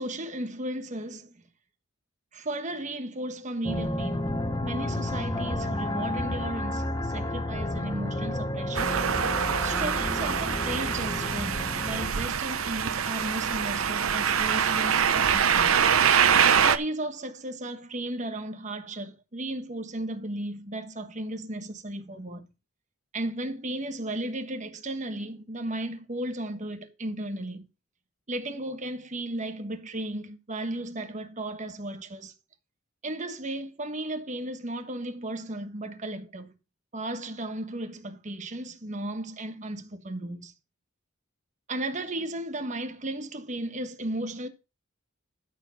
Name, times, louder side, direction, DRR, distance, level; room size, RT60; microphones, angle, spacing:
voice 1, 0.0-1.3 2.3-4.3 4.6-8.9 9.6-15.8 16.6-22.5 23.1-27.6 28.3-32.3 33.0-36.5 36.9-40.5 41.7-44.5, right 1 dB, 35° right, 1.3 m, -35 dB
sound 1, 3.6-12.1, left 1 dB, 20° left, 0.9 m, -31 dB
sound 2, 8.7-16.8, right 7 dB, 85° right, 0.8 m, -24 dB
13.0 x 4.6 x 5.8 m
head